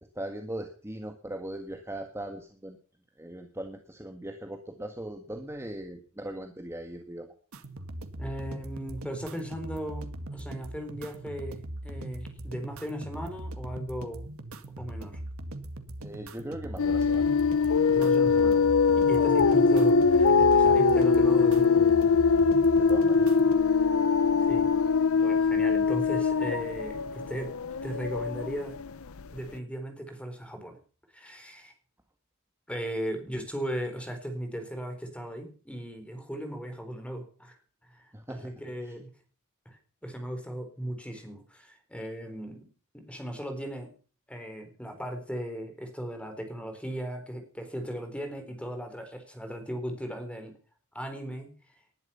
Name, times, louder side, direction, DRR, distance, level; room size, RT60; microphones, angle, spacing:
voice 1, 0.2-2.8 3.2-7.3 16.0-17.3 22.7-23.4 38.1-38.5 38.8-39.0, right 1 dB, 10° right, 4 dB, 1.7 m, -39 dB
sound 1, 7.5-23.5, right 1 dB, 75° right, 2.0 m, -40 dB
voice 2, 8.2-14.3 14.8-15.2 17.9-18.6 18.9-21.9 24.4-24.7 25.2-27.5 27.8-28.8 29.3-30.8 31.1-31.7 32.7-37.6 37.9-39.1 39.7-42.6 42.9-43.9 44.3-50.5 50.9-51.5, equal, 5° left, 5 dB, 4.1 m, -37 dB
sound 2, 16.8-29.2, left 5 dB, 70° left, 0.7 m, -22 dB
20.0 x 11.0 x 5.7 m, 0.41 s
head